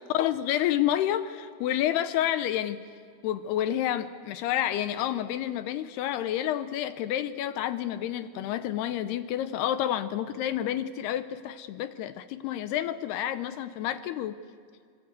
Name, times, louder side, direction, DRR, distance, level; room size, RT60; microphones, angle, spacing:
voice 1, 0.1-2.8 3.2-14.4, left 11 dB, 80° left, 11 dB, 2.4 m, -29 dB
26.0 x 23.5 x 8.2 m, 2.1 s
omnidirectional pair, 5.3 m